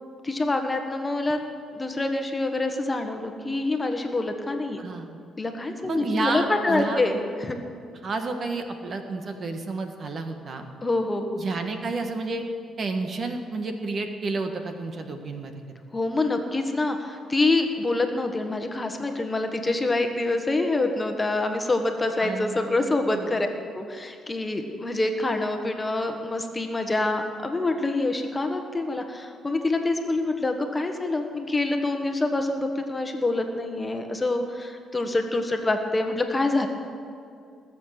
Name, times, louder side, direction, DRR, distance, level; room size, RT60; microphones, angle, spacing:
voice 1, 0.2-1.4 1.7-4.8 5.4-7.6 10.8-11.3 15.9-23.5 23.7-36.7, left 2 dB, 20° left, 5 dB, 1.4 m, -26 dB
voice 2, 4.8-5.1 5.9-7.0 8.0-10.7 11.4-12.4 12.8-15.5 22.2-23.4, right 3 dB, 50° right, 6 dB, 1.4 m, -31 dB
20.0 x 7.4 x 6.5 m, 2.3 s
cardioid pair, 90°, 0 cm